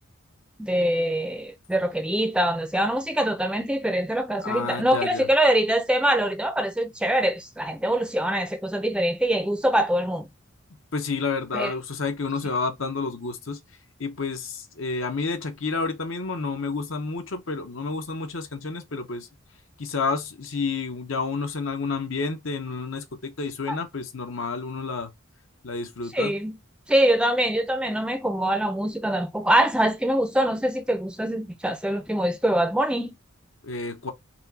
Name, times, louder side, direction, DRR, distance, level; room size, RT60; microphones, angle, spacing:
voice 1, 0.6-10.3 11.5-11.7 23.7-23.8 26.1-26.6 26.9-33.1, right 1 dB, 5° right, 0.6 m, -24 dB
voice 2, 4.4-5.3 10.9-13.6 14.0-19.3 19.8-25.1 25.6-26.3 33.6-34.1, left 4 dB, 65° left, 0.9 m, -30 dB
4.3 x 2.3 x 4.1 m
head